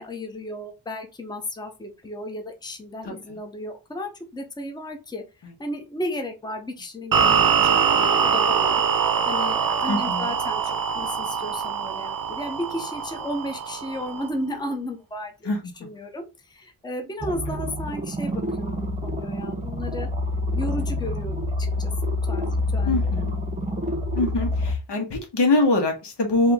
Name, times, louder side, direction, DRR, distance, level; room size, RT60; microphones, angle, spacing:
voice 1, 0.0-5.2 5.6-15.5 15.8-20.1 20.5-21.3 21.8-23.0, left 1 dB, 10° left, 4 dB, 0.7 m, -34 dB
voice 2, 3.0-3.4 5.4-5.5 9.9-10.3 15.4-15.7 22.8-23.6 24.1-26.5, left 2 dB, 85° left, 3 dB, 1.4 m, -24 dB
sound 1, 7.1-14.3, right 7 dB, 55° right, 0.6 m, -23 dB
sound 2, 17.2-24.8, left 1 dB, 20° right, 0.8 m, -27 dB
4.5 x 2.8 x 3.5 m, 0.29 s
wide cardioid pair, 160°, 40 cm